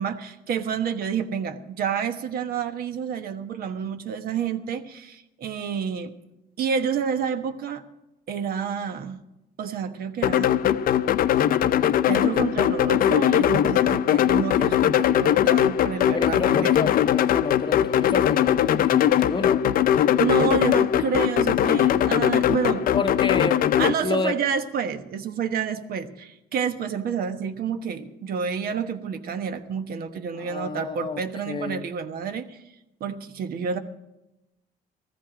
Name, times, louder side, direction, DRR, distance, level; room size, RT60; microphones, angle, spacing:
voice 1, 0.0-6.1 6.6-7.8 8.3-9.2 9.6-10.5 12.1-16.8 20.2-22.9 23.8-32.6 33.0-33.8, right 6 dB, 65° right, 1.2 m, -29 dB
sound 1, 10.2-23.9, left 10 dB, 60° left, 0.6 m, -20 dB
voice 2, 16.1-19.7 22.9-24.4 30.4-31.9, left 4 dB, 30° left, 0.8 m, -30 dB
14.5 x 14.0 x 5.0 m
cardioid pair, 110°, 17 cm